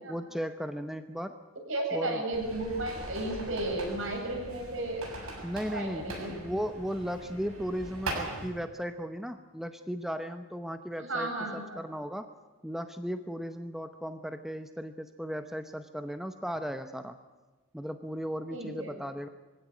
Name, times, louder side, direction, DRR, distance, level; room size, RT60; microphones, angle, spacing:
voice 1, 0.1-1.4 1.9-2.2 5.4-12.3 12.6-17.2 17.7-19.3, equal, ahead, 8 dB, 0.8 m, -36 dB
voice 2, 1.7-5.0 5.7-6.4 11.0-11.8 18.5-18.9, right 2 dB, 65° right, 1 dB, 7.7 m, -33 dB
sound 1, 2.3-8.5, right 2 dB, 80° right, 7.2 m, -41 dB
24.0 x 16.5 x 9.4 m, 1.3 s
head